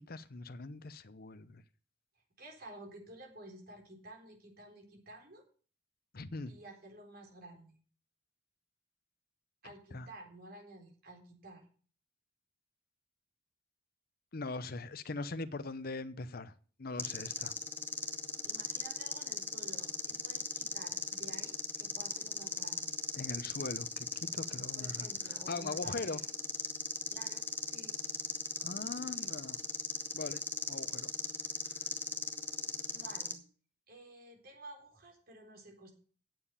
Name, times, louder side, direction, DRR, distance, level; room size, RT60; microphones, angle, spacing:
voice 1, 0.0-1.6 6.1-6.5 9.9-10.1 14.3-16.5 16.8-17.6 23.2-26.2 28.6-29.6 30.1-31.1, left 3 dB, 55° left, 0.8 m, -41 dB
voice 2, 2.4-5.4 6.5-7.7 9.6-11.6 18.4-23.0 24.8-26.3 27.1-27.9 32.9-33.4 33.9-35.9, right 2 dB, 55° right, 3.9 m, -52 dB
sound 1, 17.0-33.3, left 3 dB, 10° left, 1.3 m, -38 dB
9.3 x 7.4 x 8.3 m
head